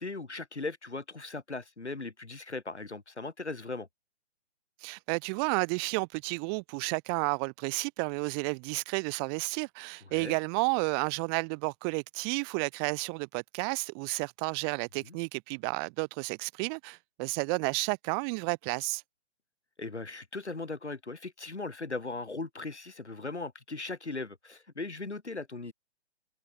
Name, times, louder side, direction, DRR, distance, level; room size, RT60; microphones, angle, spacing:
voice 1, 0.0-3.9 10.2-10.4 15.0-15.2 19.8-25.7, left 3 dB, 75° left, 5.2 m, -38 dB
voice 2, 4.8-19.0, right 39 dB, 20° right, 3.2 m, -31 dB
figure-of-eight pair, 135°, 34 cm